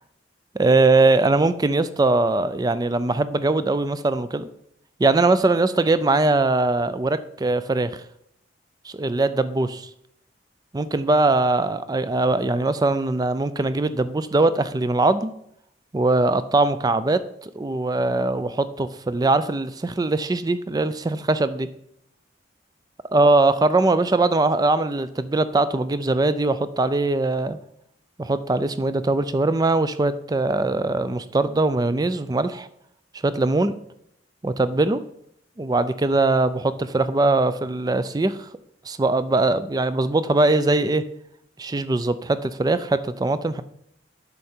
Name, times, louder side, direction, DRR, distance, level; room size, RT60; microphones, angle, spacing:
voice 1, 0.5-4.5 5.0-7.9 8.8-9.9 10.7-15.3 15.9-21.7 23.1-27.6 28.2-32.7 33.2-33.7 34.4-35.0 35.6-38.4 38.9-41.0 41.6-43.6, right 2 dB, 20° right, 13 dB, 0.4 m, -21 dB
8.4 x 6.6 x 4.4 m, 0.75 s
head